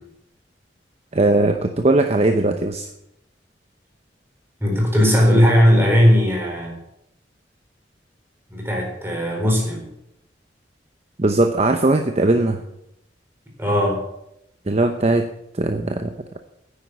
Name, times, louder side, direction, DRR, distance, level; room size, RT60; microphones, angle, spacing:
voice 1, 1.1-2.9 11.2-12.6 14.7-15.2 15.6-16.1, right 2 dB, 35° right, 7 dB, 0.8 m, -19 dB
voice 2, 4.6-6.8 8.5-9.9 13.6-14.0, equal, 15° right, -1 dB, 4.3 m, -17 dB
9.9 x 9.8 x 8.2 m, 0.82 s
head